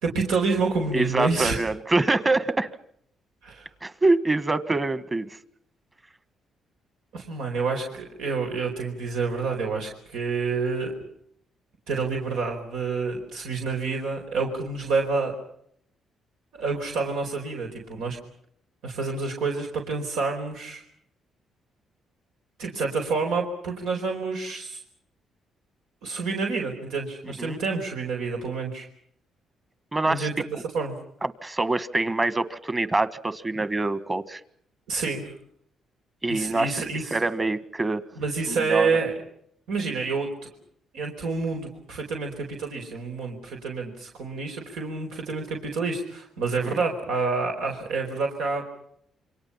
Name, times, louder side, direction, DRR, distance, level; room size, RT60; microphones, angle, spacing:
voice 1, 0.0-1.6 3.4-3.7 7.1-10.9 11.9-15.3 16.5-18.2 18.8-20.8 22.6-24.8 26.0-28.9 30.1-30.3 30.7-31.0 34.9-35.3 36.3-37.0 38.2-39.1 39.7-40.3 40.9-48.6, right 4 dB, 90° right, 2 dB, 4.5 m, -28 dB
voice 2, 0.9-2.7 3.8-5.4 27.2-27.6 29.9-30.3 30.5-30.6 31.2-34.4 36.2-36.8 37.1-38.0 38.5-39.0 46.7-46.8, right 2 dB, 20° right, 13 dB, 1.6 m, -25 dB
28.0 x 24.5 x 5.7 m, 0.69 s
cardioid pair, 90°, 0 cm